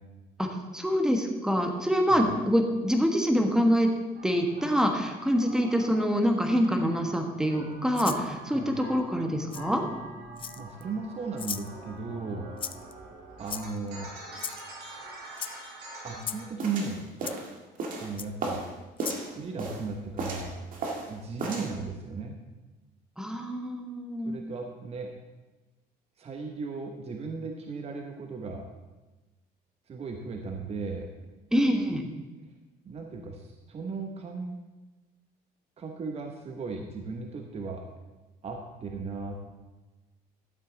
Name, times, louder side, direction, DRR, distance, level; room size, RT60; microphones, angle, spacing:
voice 1, 0.4-3.9 4.2-9.8 23.2-24.4 31.5-32.0, equal, 5° right, 3 dB, 1.3 m, -25 dB
sound 1, 4.1-16.5, right 1 dB, 75° right, 3.4 m, -45 dB
Rattle (instrument), 7.9-8.2 9.5-9.6 10.4-10.8 11.4-11.7 12.6-12.9 13.5-13.9 14.4-14.6 15.3-15.5 16.2-16.4 17.3-17.4 18.2-18.3 19.0-19.2, left 7 dB, 30° left, 0.4 m, -36 dB
voice 2, 10.6-12.5 13.4-14.1 16.0-17.1 18.0-18.7 19.3-20.5 21.1-22.4 24.2-25.1 26.2-28.7 29.9-31.1 32.9-34.5 35.8-37.8 38.4-39.4, right 4 dB, 35° right, 3 dB, 1.0 m, -36 dB
sound 2, 16.6-18.7 19.0-19.9 20.2-21.1 21.4-21.7, right 2 dB, 55° right, 2.0 m, -34 dB
12.0 x 7.5 x 3.9 m, 1.1 s
cardioid pair, 110°, 17 cm